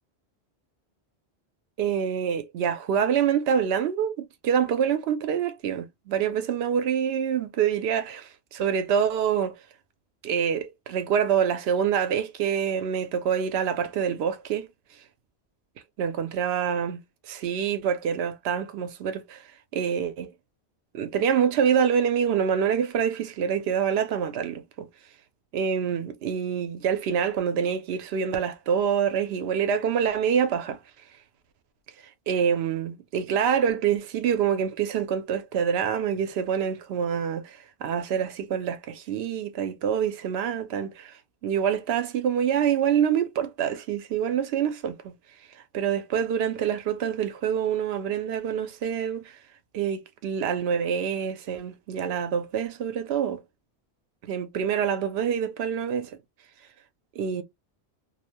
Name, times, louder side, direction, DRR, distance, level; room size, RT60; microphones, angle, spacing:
voice 1, 1.8-9.5 10.2-14.7 16.0-17.0 17.3-19.4 19.7-20.3 20.9-24.9 25.5-30.8 32.3-41.1 41.4-45.1 45.7-49.2 49.7-53.4 54.2-56.1 57.2-57.4, right 8 dB, 75° right, 0.8 m, -26 dB
2.7 x 2.0 x 2.8 m
omnidirectional pair, 1.1 m